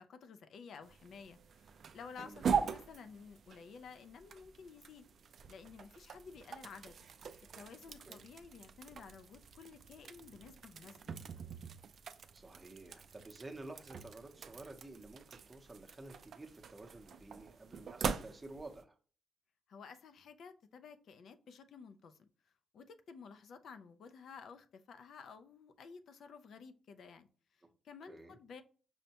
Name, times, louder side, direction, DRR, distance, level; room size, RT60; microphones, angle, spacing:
voice 1, 0.0-5.1 5.5-7.0 7.6-11.1 19.7-22.3 22.7-28.6, left 5 dB, 65° left, 9 dB, 0.3 m, -53 dB
sound 1, 0.8-18.8, right 6 dB, 55° right, 0.3 m, -43 dB
voice 2, 12.3-19.0 28.1-28.4, right 2 dB, 15° right, 3 dB, 0.7 m, -51 dB
5.4 x 2.1 x 2.8 m, 0.40 s
cardioid pair, 125°, 0 cm